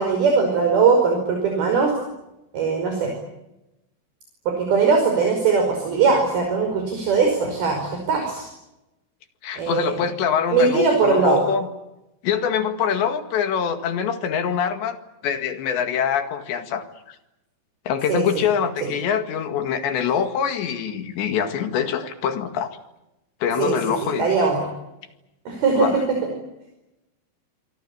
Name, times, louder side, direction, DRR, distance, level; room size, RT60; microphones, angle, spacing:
voice 1, 0.0-1.9 2.5-3.1 4.5-8.5 9.6-9.9 10.5-11.5 18.1-18.2 23.6-23.8 24.2-24.6 25.5-25.9, right 5 dB, 55° right, 2 dB, 7.1 m, -20 dB
voice 2, 9.4-11.7 12.2-15.0 15.2-17.2 17.9-22.7 23.4-24.3 25.8-26.0, left 7 dB, 70° left, 8 dB, 4.1 m, -24 dB
26.0 x 24.5 x 8.7 m, 0.91 s
omnidirectional pair, 5.5 m